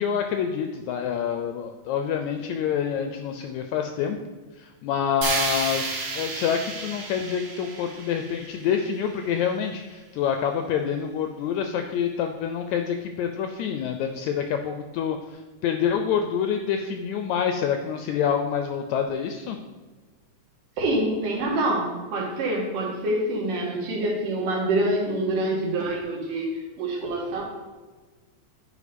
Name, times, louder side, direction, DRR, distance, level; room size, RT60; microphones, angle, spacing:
voice 1, 0.0-4.2 4.6-19.6, left 7 dB, 80° left, 6 dB, 1.6 m, -27 dB
sound 1, 5.2-9.3, right 3 dB, 60° right, 1.9 m, -31 dB
voice 2, 20.8-26.5 26.8-27.4, right 1 dB, 85° right, -2 dB, 3.3 m, -26 dB
10.0 x 4.3 x 5.2 m, 1.3 s
omnidirectional pair, 3.8 m